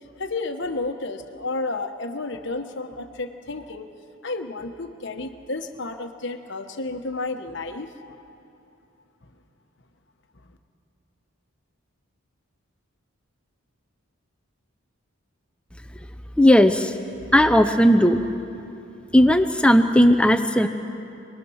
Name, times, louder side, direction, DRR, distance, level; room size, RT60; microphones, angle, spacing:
voice 1, 0.2-3.9 4.2-8.4, left 3 dB, 55° left, 6 dB, 1.2 m, -31 dB
voice 2, 16.4-16.9 17.3-18.2 19.1-20.7, equal, 5° left, 7 dB, 0.6 m, -16 dB
26.5 x 20.5 x 6.4 m, 2.9 s
head